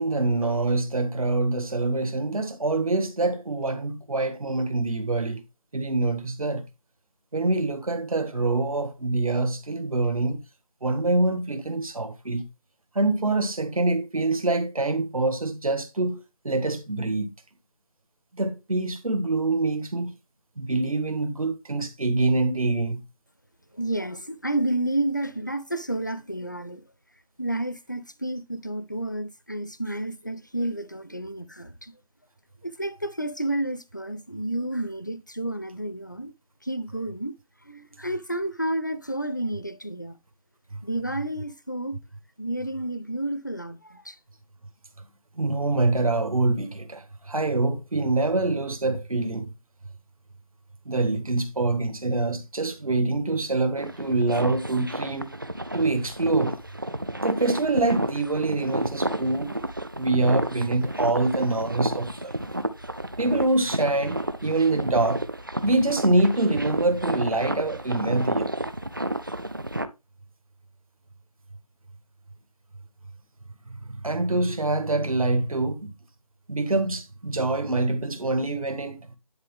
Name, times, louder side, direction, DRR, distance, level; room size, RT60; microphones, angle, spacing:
voice 1, 0.0-5.4 5.7-6.7 7.3-10.4 10.8-12.5 12.9-17.3 18.3-20.1 20.6-23.0 40.7-40.8 45.3-49.5 50.8-55.3 55.7-56.6 57.2-59.5 60.0-62.3 63.2-65.3 65.6-68.5 73.7-75.9 76.5-79.1, right 2 dB, 65° right, 1.6 m, -25 dB
voice 2, 23.7-26.8 27.4-31.9 32.6-36.3 36.6-37.4 37.6-40.2 40.8-42.0 42.4-44.2, right 1 dB, 30° left, 0.4 m, -30 dB
sound 1, 53.8-69.9, right 1 dB, 35° right, 0.5 m, -31 dB
10.5 x 4.0 x 3.4 m
figure-of-eight pair, 180°, 19 cm